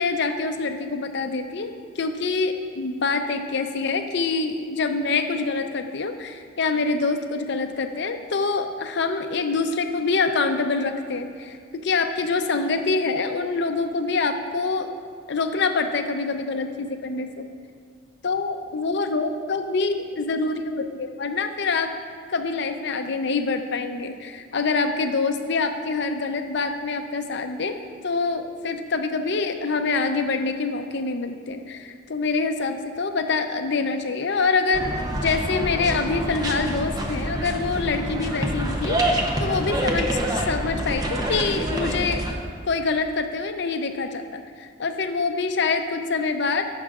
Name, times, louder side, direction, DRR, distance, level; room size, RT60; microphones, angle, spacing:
voice 1, 0.0-14.9 15.3-17.5 18.2-22.0 22.3-27.8 28.0-42.2 42.7-46.6, left 4 dB, 60° left, 7 dB, 0.6 m, -25 dB
sound 1, 34.7-42.3, right 1 dB, 20° right, 0.7 m, -27 dB
16.0 x 6.3 x 2.4 m, 2.1 s
head